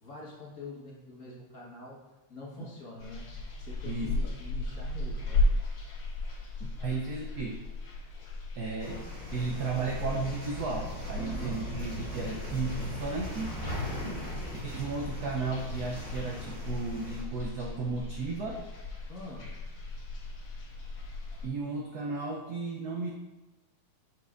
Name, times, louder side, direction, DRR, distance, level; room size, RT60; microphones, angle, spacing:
voice 1, 0.0-2.0 2.3-5.5 11.1-11.6 13.9-14.2 19.1-19.5, left 2 dB, 45° left, -4 dB, 1.6 m, -45 dB
sound 1, 3.0-21.5, left 2 dB, 65° left, 1.8 m, -36 dB
voice 2, 3.8-4.3 6.6-7.6 8.5-13.5 14.6-18.6 21.4-23.1, right 3 dB, 80° right, 0 dB, 0.8 m, -34 dB
sound 2, 8.8-17.2, equal, 25° right, 2.1 m, -39 dB
7.4 x 5.6 x 2.5 m, 1.1 s
omnidirectional pair, 2.4 m